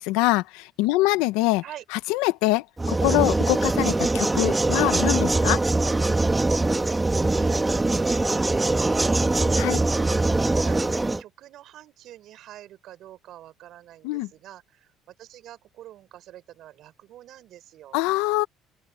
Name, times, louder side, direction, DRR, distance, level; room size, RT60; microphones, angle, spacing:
voice 1, 0.0-1.6 2.1-5.6 9.6-9.8 14.0-14.3 17.9-18.5, left 19 dB, 85° left, 1.3 m, -24 dB
sound 1, 2.8-11.2, right 2 dB, 15° right, 2.1 m, -22 dB
voice 2, 7.3-10.2 10.5-10.9 11.2-18.0, right 13 dB, 65° right, 5.6 m, -46 dB
open air
supercardioid pair, 80°, 0 cm